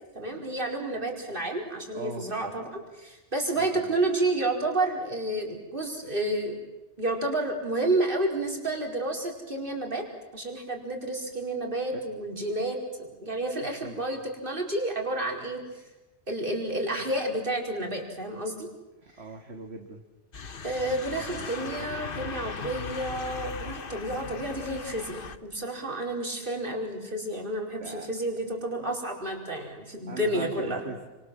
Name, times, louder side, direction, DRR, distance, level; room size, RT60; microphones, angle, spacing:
voice 1, 0.1-6.6 7.0-10.1 10.3-15.8 16.3-18.7 20.6-30.8, right 2 dB, 45° right, 2 dB, 5.0 m, -30 dB
voice 2, 1.9-2.3 3.5-3.9 6.0-6.1 13.8-14.0 19.0-20.0 21.2-21.5 27.8-28.1 28.8-28.9 30.1-31.1, right 3 dB, 60° right, 4 dB, 2.3 m, -40 dB
sound 1, 20.3-25.4, left 5 dB, 50° left, 1.3 m, -38 dB
29.5 x 26.5 x 7.6 m, 1.1 s
omnidirectional pair, 1.2 m